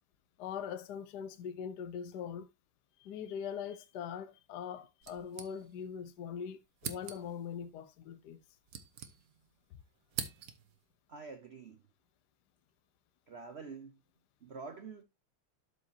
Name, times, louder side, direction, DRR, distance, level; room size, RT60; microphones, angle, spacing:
voice 1, 0.4-2.5 3.0-8.4, left 7 dB, 65° left, 1.1 m, -42 dB
sound 1, 5.0-6.0 6.3-6.4 6.8-7.5 8.3-9.6 9.8-10.8, right 8 dB, 60° right, 1.0 m, -44 dB
voice 2, 11.1-11.8 13.3-14.0 14.4-15.0, right 4 dB, 75° right, 0.6 m, -47 dB
12.0 x 4.9 x 2.8 m
omnidirectional pair, 2.3 m